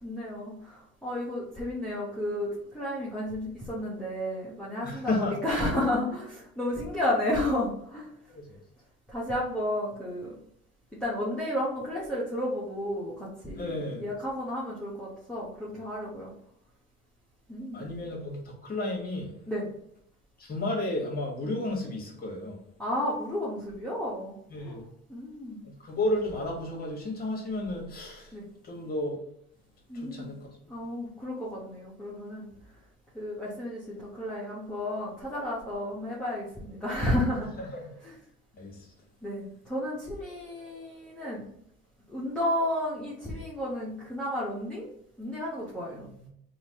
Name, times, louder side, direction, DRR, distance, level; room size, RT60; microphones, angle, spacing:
voice 1, 0.0-8.1 9.1-10.3 11.0-16.3 17.5-17.8 19.5-19.7 22.8-24.8 25.1-25.6 28.3-28.5 29.9-30.3 30.7-32.5 33.1-37.5 38.0-38.1 39.2-41.5 42.1-44.9 45.2-46.1, left 1 dB, 5° left, -8 dB, 0.9 m, -32 dB
voice 2, 4.8-5.5 8.3-8.5 13.5-14.0 17.7-19.3 20.4-22.6 24.5-24.8 25.6-28.3 28.6-29.2 29.9-30.5 37.6-38.0 38.6-38.8 46.0-46.3, left 1 dB, 30° left, 0 dB, 1.4 m, -32 dB
3.0 x 2.6 x 2.8 m, 0.71 s
supercardioid pair, 80°, 32 cm